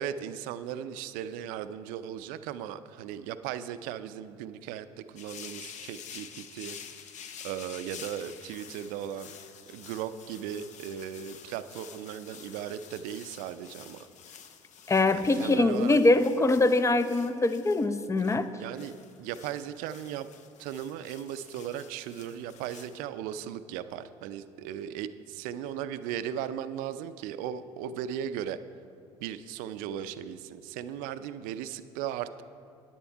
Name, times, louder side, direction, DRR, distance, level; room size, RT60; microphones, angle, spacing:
voice 1, 0.0-9.3 9.7-14.1 15.2-16.0 18.6-20.3 20.6-28.6 29.2-32.4, right 10 dB, 70° right, 12 dB, 0.5 m, -37 dB
sound 1, 5.2-23.0, left 8 dB, 55° left, 0.7 m, -49 dB
voice 2, 14.9-18.5, left 2 dB, 20° left, 11 dB, 0.6 m, -23 dB
10.0 x 8.8 x 4.5 m, 2.4 s
hypercardioid pair, 65°, 15 cm